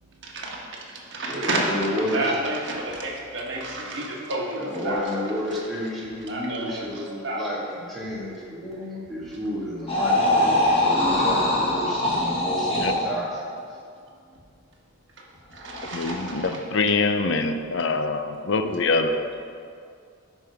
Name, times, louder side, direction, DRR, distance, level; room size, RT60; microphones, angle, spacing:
voice 1, 0.2-0.6 1.1-5.0 6.3-7.5 15.5-16.4, right 1 dB, 55° right, -2 dB, 1.6 m, -30 dB
voice 2, 1.2-2.4 4.6-13.5, equal, ahead, -8 dB, 2.0 m, -31 dB
sound 1, 9.9-13.1 15.7-16.4, left 1 dB, 25° left, 1.5 m, -22 dB
voice 3, 15.9-19.3, left 3 dB, 55° left, 7 dB, 0.6 m, -24 dB
12.0 x 5.4 x 4.9 m, 2.3 s
head